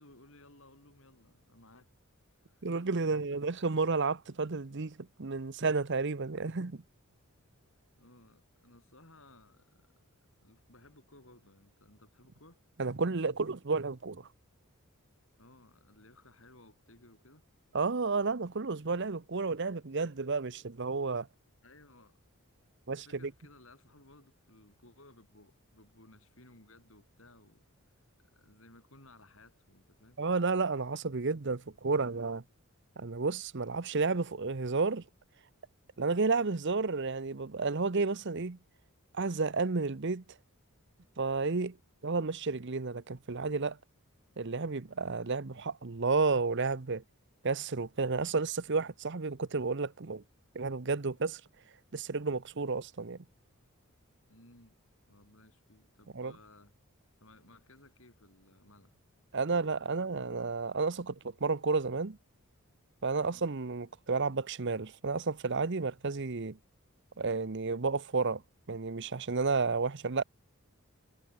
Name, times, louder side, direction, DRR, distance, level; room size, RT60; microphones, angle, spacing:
voice 1, 0.0-1.9 2.3-2.7 3.0-3.4 8.0-10.0 10.4-12.6 15.4-17.4 21.6-22.2 22.9-27.7 28.2-30.2 46.9-47.0 54.3-54.8 55.1-56.7 57.2-58.9 59.4-60.3 63.2-63.5, left 2 dB, 60° left, 7.0 m, -59 dB
voice 2, 2.6-6.8 12.8-14.3 17.7-21.3 22.9-23.3 30.2-32.4 33.0-35.0 36.0-38.6 39.1-40.2 41.2-41.8 42.0-43.8 44.4-47.0 47.4-50.2 50.5-51.4 51.9-53.2 56.1-56.3 59.3-62.2 63.0-66.6 67.2-68.4 68.7-70.2, right 4 dB, 50° right, 0.8 m, -31 dB
head